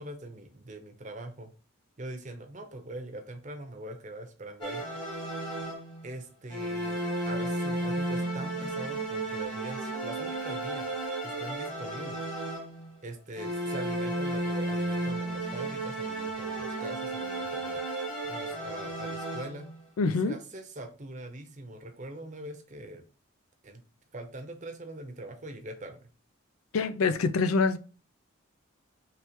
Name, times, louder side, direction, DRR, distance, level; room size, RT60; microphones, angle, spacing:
voice 1, 0.0-1.5 2.0-4.8 6.0-10.9 11.2-12.3 13.0-17.8 18.2-19.7 20.2-23.0 23.6-23.8 24.1-26.1, right 1 dB, 35° right, 0.7 m, -42 dB
sound 1, 4.6-6.1 6.5-12.9 13.4-19.8, right 1 dB, 20° left, 1.3 m, -33 dB
voice 2, 20.0-20.4 26.7-27.8, left 4 dB, 80° left, 0.4 m, -25 dB
4.9 x 3.2 x 2.9 m
head